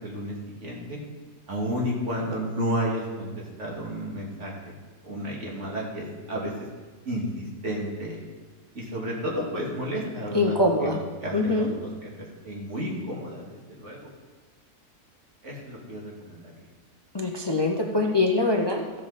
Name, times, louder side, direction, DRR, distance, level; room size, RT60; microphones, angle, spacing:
voice 1, 0.0-1.0 1.5-3.3 3.6-4.7 5.0-6.5 7.1-8.2 8.7-14.0 15.4-16.5, equal, 50° right, -3 dB, 2.4 m, -32 dB
voice 2, 10.3-11.0 11.3-11.8 17.1-19.0, left 2 dB, 40° left, 2 dB, 0.3 m, -23 dB
13.5 x 7.6 x 4.1 m, 1.3 s
omnidirectional pair, 1.7 m